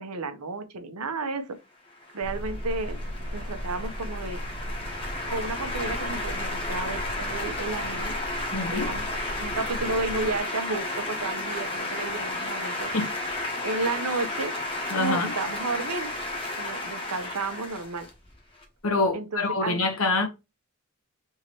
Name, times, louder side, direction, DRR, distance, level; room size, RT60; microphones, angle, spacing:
voice 1, 0.0-1.6 2.1-3.0 3.3-4.4 5.3-8.1 8.5-9.1 9.4-12.9 13.6-14.5 14.9-16.1 16.5-18.1 19.1-19.8, right 3 dB, 85° right, 0.8 m, -32 dB
sound 1, 2.0-18.6, left 2 dB, 25° left, 1.1 m, -33 dB
sound 2, 2.2-10.4, equal, 50° right, 0.9 m, -36 dB
voice 2, 8.5-8.9 12.9-13.1 14.9-15.3 18.8-20.3, left 3 dB, 65° left, 1.0 m, -26 dB
3.6 x 3.0 x 4.4 m
head